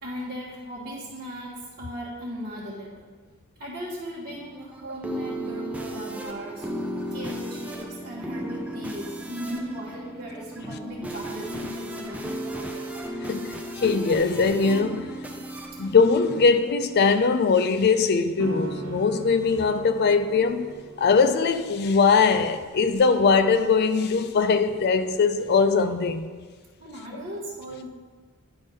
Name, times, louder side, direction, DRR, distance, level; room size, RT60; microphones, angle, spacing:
voice 1, 0.0-3.1 3.6-6.7 7.1-12.8 26.8-27.9, equal, 45° right, 1.2 m, -37 dB
sound 1, 4.3-17.0, right 1 dB, 5° right, 0.5 m, -35 dB
voice 2, 13.3-15.1 15.8-20.7 21.0-26.3, left 5 dB, 45° left, 0.4 m, -21 dB
sound 2, 18.4-25.7, right 2 dB, 65° right, 1.0 m, -41 dB
9.9 x 3.6 x 5.3 m
head